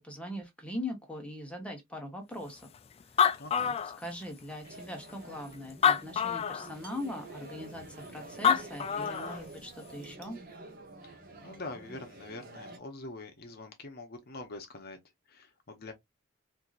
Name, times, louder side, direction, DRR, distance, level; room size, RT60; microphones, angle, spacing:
voice 1, 0.0-2.7 3.6-3.7 4.0-10.4, left 1 dB, 5° left, 1.0 m, -40 dB
Animal, 2.7-2.8 3.0-4.4 5.1-5.2 5.7-6.7 8.2-8.3 8.4-9.4, left 7 dB, 30° left, 0.3 m, -26 dB
voice 2, 3.4-3.8 11.0-15.0 15.3-15.9, left 2 dB, 50° left, 0.8 m, -44 dB
sound 1, 4.6-12.8, right 2 dB, 45° right, 0.8 m, -48 dB
4.4 x 2.6 x 2.4 m
head